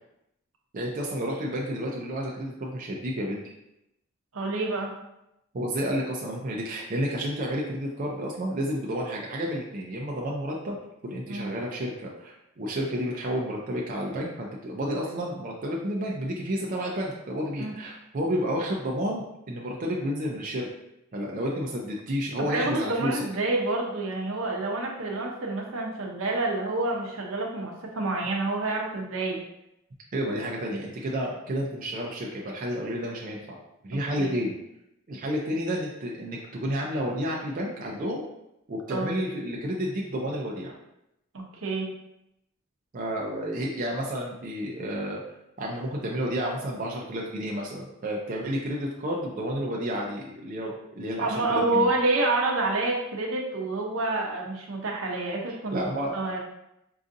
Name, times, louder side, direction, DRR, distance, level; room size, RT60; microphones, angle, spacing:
voice 1, 0.7-3.4 5.5-20.7 21.1-23.2 30.1-33.6 33.8-34.5 35.1-38.2 38.7-40.7 42.9-45.2 45.6-50.7 51.0-51.9 55.7-56.1, equal, 40° right, -2 dB, 0.4 m, -31 dB
voice 2, 4.3-4.9 11.3-11.5 17.6-17.7 22.5-29.4 33.9-34.3 38.9-39.1 41.3-41.9 51.2-55.8 56.1-56.4, right 2 dB, 75° right, 0 dB, 0.7 m, -28 dB
4.7 x 2.6 x 2.5 m, 0.85 s
head